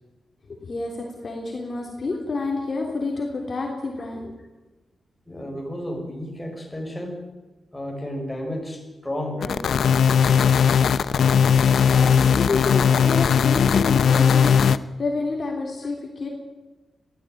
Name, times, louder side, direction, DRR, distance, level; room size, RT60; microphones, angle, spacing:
voice 1, 0.5-4.3 11.9-16.3, left 3 dB, 40° left, 0 dB, 3.4 m, -29 dB
voice 2, 5.3-7.2 7.7-9.7 10.9-11.1 12.4-12.5, left 1 dB, 10° left, 0 dB, 6.3 m, -33 dB
sound 1, 9.4-14.8, left 7 dB, 75° left, 0.7 m, -18 dB
22.0 x 15.0 x 9.4 m, 1.1 s
wide cardioid pair, 120°, 0 cm